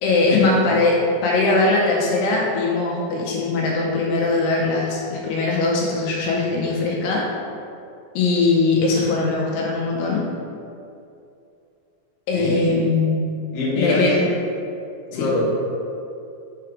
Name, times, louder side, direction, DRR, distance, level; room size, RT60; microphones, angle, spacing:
voice 1, 0.0-7.3 8.2-10.2 12.3-13.3 13.8-14.2 15.1-15.3, left 3 dB, 85° left, -3 dB, 2.7 m, -20 dB
voice 2, 12.3-12.8 13.5-14.2 15.1-15.4, left 1 dB, 55° left, -7 dB, 2.1 m, -23 dB
5.7 x 4.9 x 4.6 m, 2.6 s
omnidirectional pair, 4.9 m